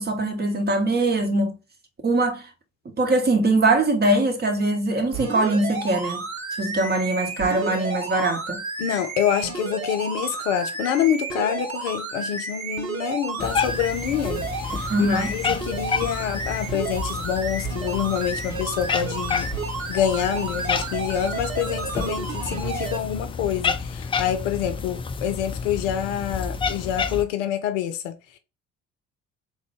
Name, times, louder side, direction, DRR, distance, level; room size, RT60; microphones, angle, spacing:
voice 1, 0.0-1.5 2.0-2.4 2.8-6.2 6.6-8.6 14.9-15.3, right 2 dB, 25° right, 1.0 m, -22 dB
sound 1, 5.1-23.0 23.6-23.7, right 4 dB, 85° right, 0.7 m, -32 dB
voice 2, 8.8-19.5 19.9-28.4, left 9 dB, 65° left, 0.6 m, -26 dB
Cat, 13.4-27.3, left 5 dB, 15° left, 0.3 m, -30 dB
3.7 x 2.1 x 3.4 m
figure-of-eight pair, 50°, 40 cm